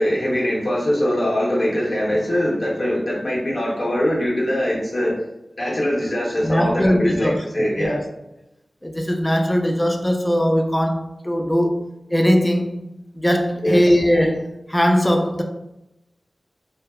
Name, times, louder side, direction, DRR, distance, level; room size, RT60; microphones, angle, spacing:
voice 1, 0.0-5.1 5.6-8.0 13.6-14.0, equal, 45° left, 0.9 m, -22 dB
voice 2, 6.4-8.1 8.8-11.8 12.1-12.8 13.1-15.4, equal, 10° left, 0.3 m, -20 dB
2.8 x 2.0 x 2.3 m
wide cardioid pair, 60°, 0 cm